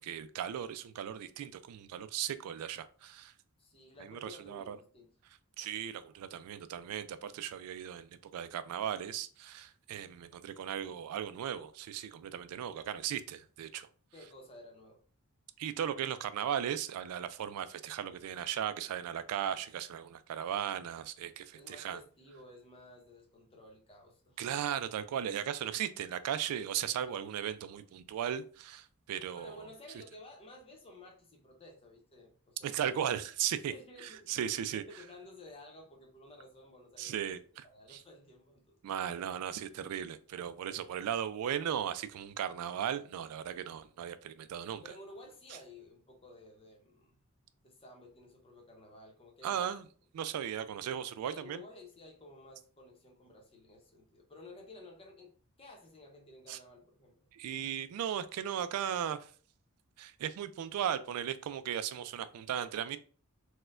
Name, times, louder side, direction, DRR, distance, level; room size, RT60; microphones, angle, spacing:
voice 1, 0.0-3.3 4.0-4.8 5.6-13.9 15.6-22.0 24.4-29.6 32.6-33.7 34.3-34.8 37.0-38.0 38.8-44.8 49.4-49.8 50.1-51.6 56.5-56.6 57.3-59.3 60.0-63.0, right 9 dB, 75° right, 0.3 m, -37 dB
voice 2, 3.6-5.1 14.1-15.0 21.5-24.6 27.7-27.8 29.3-32.8 33.6-37.3 37.6-38.8 40.7-41.1 44.8-47.2 47.6-49.7 51.2-57.2, left 1 dB, 25° left, 0.8 m, -54 dB
4.2 x 2.2 x 2.4 m
head